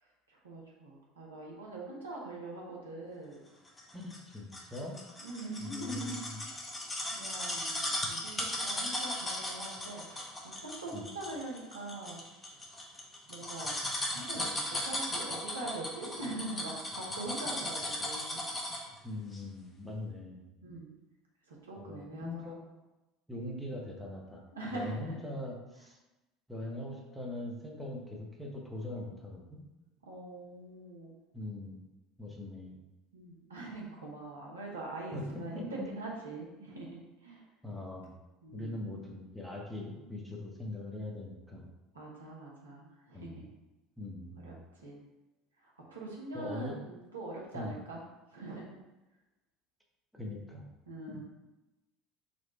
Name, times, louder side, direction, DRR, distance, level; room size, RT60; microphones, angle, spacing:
voice 1, 0.0-3.4 5.2-6.5 7.1-12.2 13.3-18.4 20.6-20.9 21.5-22.6 24.5-25.3 30.0-31.2 33.1-37.5 38.4-38.9 41.9-43.5 44.4-45.0 45.6-48.0 48.3-48.8 50.9-51.2, right 2 dB, 80° right, -3 dB, 0.9 m, -43 dB
sound 1, 3.8-19.0 19.3-19.4, left 1 dB, 20° left, 0.9 m, -37 dB
voice 2, 3.9-5.0 5.6-6.1 10.9-11.1 19.0-20.4 21.8-22.6 23.3-24.4 24.7-26.0 26.5-29.6 31.3-31.8 32.2-32.8 35.1-35.9 37.6-38.1 38.5-41.6 43.1-43.4 44.0-44.5 46.3-46.8 47.5-47.7 50.1-50.7, left 2 dB, 5° right, -1 dB, 1.0 m, -41 dB
4.3 x 2.4 x 4.1 m, 1.0 s
figure-of-eight pair, 70°, 0 cm